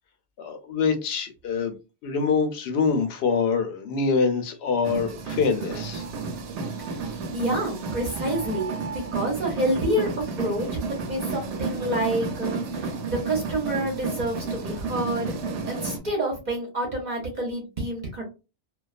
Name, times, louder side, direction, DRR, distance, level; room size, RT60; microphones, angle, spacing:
voice 1, 0.4-1.7 2.0-6.0, left 5 dB, 65° left, 0.8 m, -25 dB
sound 1, 4.8-16.0, right 4 dB, 75° right, 0.8 m, -32 dB
voice 2, 7.3-10.1 10.4-15.4 15.6-18.2, right 1 dB, 45° right, 0.7 m, -28 dB
2.3 x 2.3 x 2.3 m
omnidirectional pair, 1.2 m